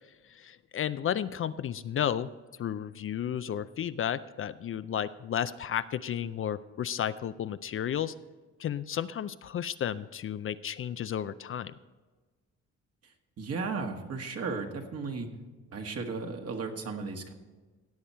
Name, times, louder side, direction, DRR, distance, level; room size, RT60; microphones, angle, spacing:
voice 1, 0.3-2.3 2.6-8.1 8.6-11.7, left 9 dB, 45° left, 14 dB, 0.4 m, -33 dB
voice 2, 13.4-15.3 15.7-17.3, right 4 dB, 55° right, 3 dB, 1.7 m, -35 dB
17.0 x 7.0 x 4.4 m, 1.3 s
cardioid pair, 90°, 30 cm